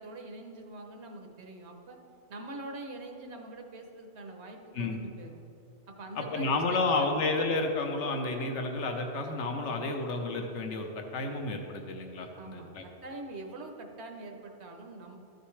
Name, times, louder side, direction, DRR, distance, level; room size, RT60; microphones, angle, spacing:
voice 1, 0.0-2.0 2.3-5.4 5.9-7.1 12.4-15.2, right 2 dB, 70° right, 3 dB, 1.2 m, -44 dB
voice 2, 6.2-12.8, left 3 dB, 80° left, 4 dB, 1.1 m, -31 dB
13.0 x 6.5 x 3.2 m, 2.9 s
omnidirectional pair, 1.2 m